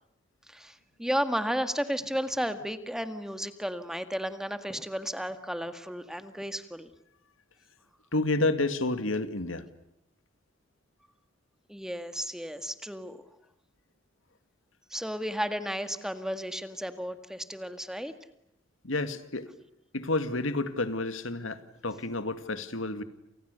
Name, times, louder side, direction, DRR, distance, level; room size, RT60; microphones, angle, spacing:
voice 1, 0.5-6.9 11.7-13.2 14.9-18.1, equal, 5° right, 9 dB, 1.8 m, -33 dB
voice 2, 8.1-9.7 18.8-19.5 19.9-23.0, left 2 dB, 90° left, 10 dB, 2.3 m, -30 dB
29.5 x 29.0 x 6.9 m, 0.79 s
head